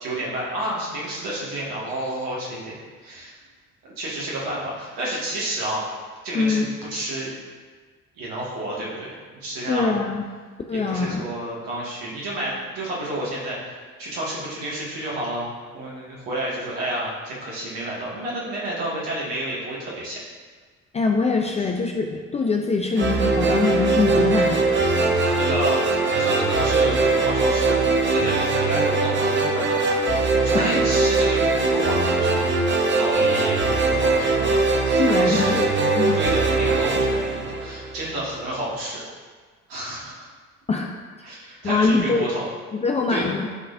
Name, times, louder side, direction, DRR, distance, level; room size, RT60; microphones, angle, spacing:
voice 1, 0.0-2.7 3.0-3.3 3.8-5.8 6.2-7.3 8.2-10.0 10.9-20.2 25.3-27.8 28.1-32.5 32.9-35.5 36.1-39.1 39.7-40.3 41.2-42.4 43.1-43.2, right 1 dB, 60° right, -5 dB, 1.8 m, -30 dB
voice 2, 6.3-6.7 9.7-10.2 10.7-11.3 20.9-24.6 25.1-25.4 30.5-30.9 35.0-36.2 40.7-40.9 41.6-42.3 42.7-43.5, left 4 dB, 15° left, 1 dB, 0.4 m, -23 dB
sound 1, 23.0-38.2, right 3 dB, 30° right, 0.7 m, -21 dB
10.0 x 3.9 x 2.5 m, 1.5 s
figure-of-eight pair, 50°, 40 cm